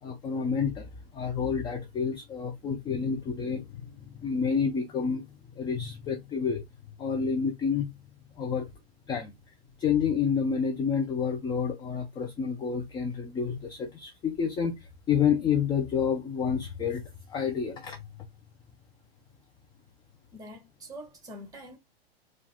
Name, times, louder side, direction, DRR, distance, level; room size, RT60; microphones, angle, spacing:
voice 1, 0.0-5.3 5.6-6.6 7.0-7.9 8.4-8.7 9.1-9.3 9.8-17.0 17.3-18.0, left 6 dB, 15° left, 0.5 m, -29 dB
voice 2, 20.3-21.8, equal, 10° right, 1.7 m, -44 dB
4.6 x 2.5 x 3.4 m
figure-of-eight pair, 105°, 30 cm